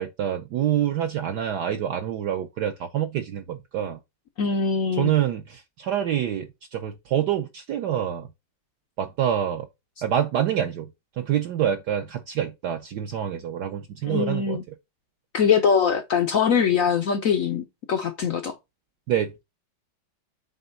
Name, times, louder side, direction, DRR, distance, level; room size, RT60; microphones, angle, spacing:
voice 1, 0.0-4.0 5.0-8.3 9.0-9.7 10.0-10.9 11.2-14.8 19.1-19.4, right 10 dB, 70° right, 1.0 m, -26 dB
voice 2, 4.4-5.1 14.0-14.6 15.3-18.6, left 6 dB, 75° left, 0.7 m, -22 dB
7.9 x 3.3 x 5.2 m
omnidirectional pair, 2.3 m